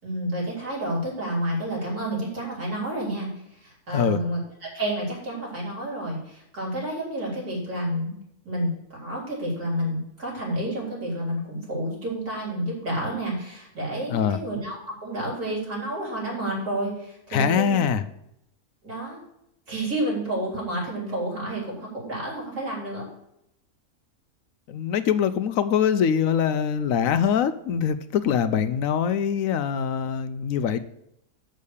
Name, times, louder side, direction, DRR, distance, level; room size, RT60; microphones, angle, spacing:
voice 1, 0.0-3.3 3.6-8.1 8.4-17.9 18.8-19.2 19.7-23.1, right 1 dB, 90° right, -4 dB, 4.2 m, -30 dB
voice 2, 14.1-14.4 17.3-18.0 24.7-30.8, left 7 dB, 70° left, 12 dB, 0.9 m, -23 dB
7.0 x 6.4 x 6.5 m, 0.80 s
omnidirectional pair, 1.6 m